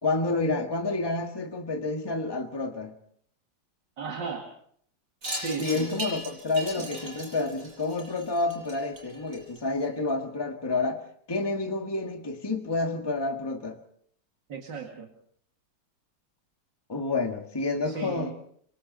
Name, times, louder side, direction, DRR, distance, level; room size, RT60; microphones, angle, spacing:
voice 1, 0.0-2.9 5.6-11.0 11.3-13.8 16.9-18.3, left 3 dB, 15° left, 4 dB, 1.7 m, -29 dB
voice 2, 4.0-4.5 5.3-5.9 6.8-6.9 14.5-15.1 17.9-18.3, right 5 dB, 65° right, 3 dB, 2.8 m, -35 dB
Wind chime, 5.2-9.8, right 1 dB, 45° right, 7.9 m, -38 dB
26.5 x 25.0 x 4.1 m, 0.62 s
omnidirectional pair, 2.1 m